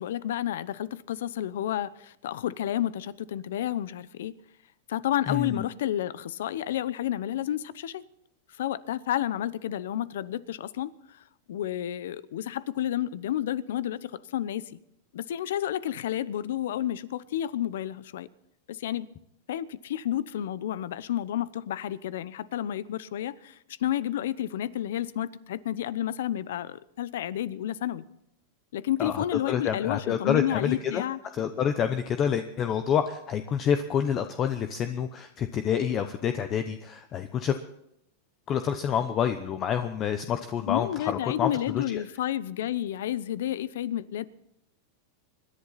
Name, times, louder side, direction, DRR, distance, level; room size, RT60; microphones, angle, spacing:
voice 1, 0.0-4.3 4.9-8.0 8.6-14.8 15.1-18.3 18.7-19.1 19.5-28.1 28.7-31.2 40.7-44.3, left 11 dB, 80° left, 18 dB, 0.8 m, -31 dB
voice 2, 5.3-5.7 29.0-31.0 31.3-37.6 38.5-42.0, left 8 dB, 30° left, 9 dB, 0.8 m, -28 dB
25.5 x 11.0 x 4.2 m, 0.78 s
supercardioid pair, 150°, 0 cm